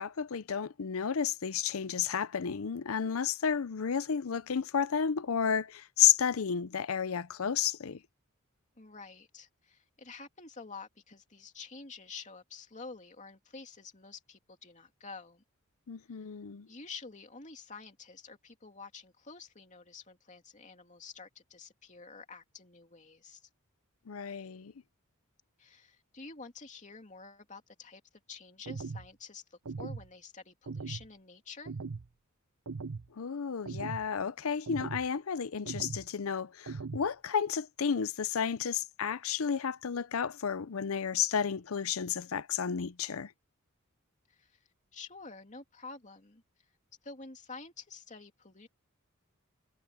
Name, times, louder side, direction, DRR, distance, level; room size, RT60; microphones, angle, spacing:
voice 1, 0.0-8.0 15.9-16.7 24.1-24.7 33.2-43.3, left 7 dB, 70° left, 0.6 m, -32 dB
voice 2, 8.8-15.4 16.1-16.3 16.7-23.5 25.6-28.0 28.3-31.7 44.3-44.6 44.9-46.4 47.0-48.7, left 4 dB, 35° left, 2.7 m, -49 dB
sound 1, 28.7-29.1 29.7-30.1 30.7-31.1 31.7-32.1 32.7-33.1 33.7-34.1 34.7-35.1 35.7-36.1 36.7-37.1, right 4 dB, 65° right, 0.7 m, -39 dB
head